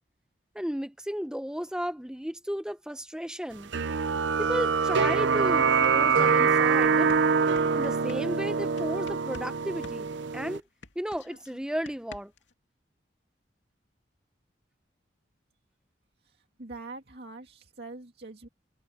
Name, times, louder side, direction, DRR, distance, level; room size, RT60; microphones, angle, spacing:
voice 1, 0.5-3.7 4.4-7.1 7.7-10.6 11.0-12.3, equal, 5° right, 0.7 m, -34 dB
sound 1, 3.7-10.6, right 5 dB, 80° right, 0.7 m, -24 dB
sound 2, 5.3-5.4 5.7-9.5 9.8-12.5, left 3 dB, 85° left, 2.6 m, -49 dB
voice 2, 16.2-18.5, right 3 dB, 60° right, 2.2 m, -44 dB
head